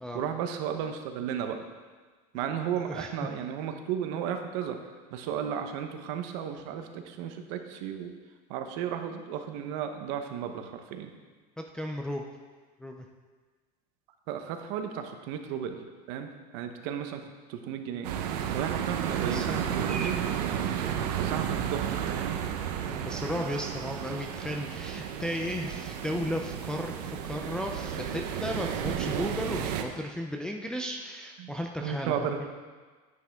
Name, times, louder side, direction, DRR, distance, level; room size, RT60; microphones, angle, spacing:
voice 1, 0.1-1.6 2.3-4.8 5.1-8.1 8.5-11.1 14.3-15.8 16.1-17.2 17.5-18.1 18.5-20.2 20.5-20.6 21.2-22.4 31.4-31.5 31.8-32.5, right 8 dB, 55° right, 6 dB, 1.0 m, -34 dB
voice 2, 11.6-12.2 12.8-13.1 19.2-20.1 22.8-32.5, equal, 5° left, 1 dB, 0.4 m, -35 dB
sound 1, 18.0-29.8, right 9 dB, 85° right, 0.9 m, -32 dB
9.9 x 9.4 x 3.5 m, 1.4 s
supercardioid pair, 160°, 20 cm